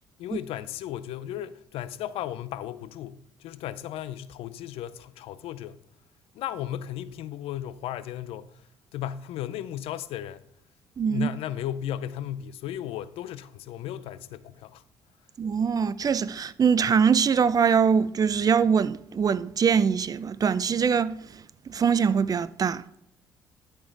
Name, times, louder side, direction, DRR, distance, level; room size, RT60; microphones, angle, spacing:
voice 1, 0.2-5.8 6.3-8.6 8.9-10.4 11.0-14.8, left 11 dB, 75° left, 0.5 m, -35 dB
voice 2, 11.0-11.3 15.4-21.2 21.7-22.8, right 6 dB, 40° right, 0.5 m, -23 dB
12.5 x 4.4 x 4.6 m
supercardioid pair, 70°, 10 cm